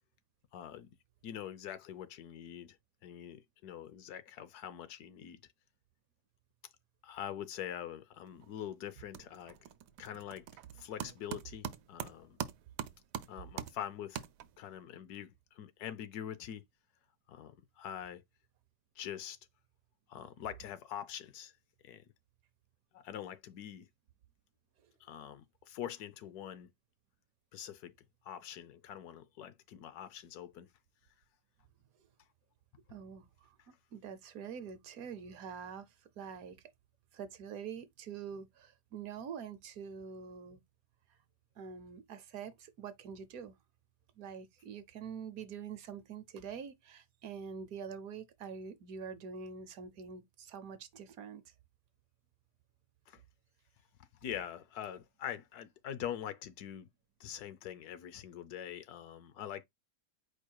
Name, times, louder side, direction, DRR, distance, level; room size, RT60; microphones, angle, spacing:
voice 1, 0.5-0.9 1.2-2.8 3.0-5.4 7.0-9.6 10.0-10.4 10.8-12.4 13.3-14.2 14.6-16.6 17.3-18.2 19.0-19.4 20.1-21.5 21.8-22.0 22.9-23.9 25.0-26.7 27.5-27.9 28.2-30.7 53.1-53.2 54.2-56.9 57.2-59.7, left 10 dB, 75° left, 1.1 m, -44 dB
sound 1, 8.3-8.6 8.9-14.8, right 10 dB, 90° right, 1.2 m, -44 dB
voice 2, 32.9-33.5 33.9-36.6 37.1-40.6 41.6-43.6 44.2-51.4, right 6 dB, 70° right, 1.0 m, -45 dB
4.8 x 2.2 x 4.5 m
omnidirectional pair, 1.7 m